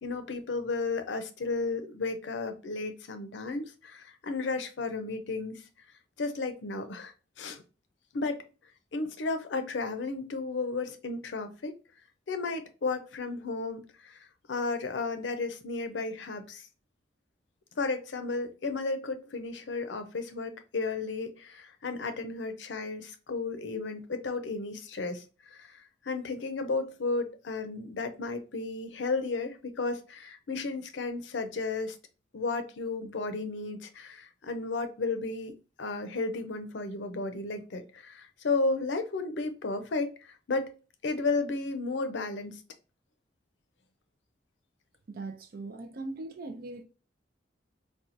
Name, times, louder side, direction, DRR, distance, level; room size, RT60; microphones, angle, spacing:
voice 1, 0.0-5.6 6.2-7.6 8.1-8.4 8.9-11.7 12.3-14.2 14.5-16.6 17.8-25.2 25.5-25.8 26.0-32.0 32.3-40.7 41.0-42.6, left 3 dB, 75° left, 0.6 m, -33 dB
voice 2, 45.1-46.8, right 2 dB, 55° right, 0.4 m, -40 dB
4.1 x 2.3 x 2.5 m
head